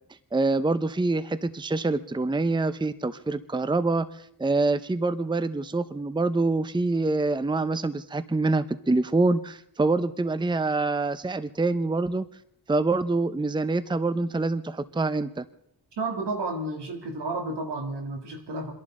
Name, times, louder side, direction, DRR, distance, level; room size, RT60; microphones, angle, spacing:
voice 1, 0.3-12.2 12.7-15.4, right 3 dB, 10° right, 14 dB, 0.7 m, -25 dB
voice 2, 16.0-18.7, right 2 dB, 80° right, 3 dB, 3.0 m, -31 dB
29.0 x 11.0 x 3.9 m, 0.74 s
cardioid pair, 65°, 41 cm